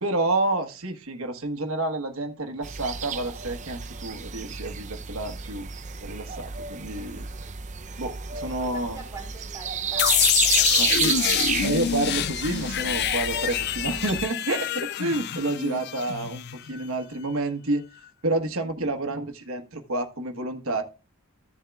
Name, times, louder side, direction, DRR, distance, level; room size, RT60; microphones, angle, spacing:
voice 1, 0.0-5.7 6.0-7.2 8.0-9.0 10.8-11.1 11.6-17.8 18.2-20.8, right 2 dB, 70° right, 1.3 m, -29 dB
sound 1, 2.6-14.2, right 7 dB, 35° right, 0.5 m, -31 dB
voice 2, 8.3-11.9, right 3 dB, 15° right, 3.9 m, -46 dB
sound 2, 10.0-16.8, left 11 dB, 50° left, 0.3 m, -26 dB
15.0 x 7.3 x 2.3 m
head